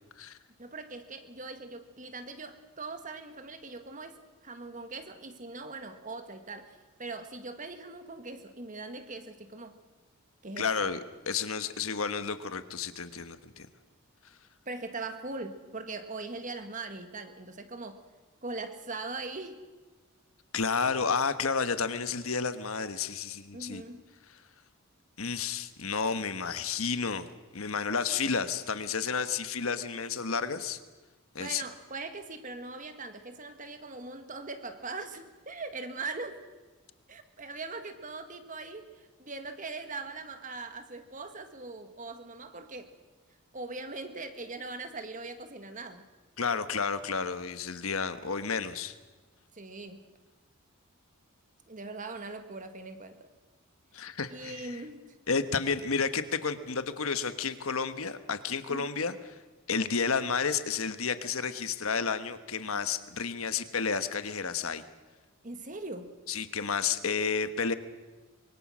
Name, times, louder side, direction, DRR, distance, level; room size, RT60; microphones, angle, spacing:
voice 1, 0.6-9.8 10.4-10.9 14.6-18.0 18.4-19.6 23.5-24.0 31.4-36.4 37.1-42.9 43.5-46.1 49.5-50.1 51.7-53.3 54.3-55.1 55.8-55.9 58.7-58.9 65.4-66.2, right 3 dB, 35° right, 8 dB, 1.7 m, -41 dB
voice 2, 10.6-11.0 11.3-13.7 20.5-23.8 25.2-27.3 27.5-30.8 31.3-31.6 46.4-48.9 53.9-54.8 55.3-59.2 59.7-64.8 66.3-67.7, left 5 dB, 75° left, 11 dB, 1.3 m, -31 dB
25.0 x 23.0 x 6.3 m, 1.3 s
head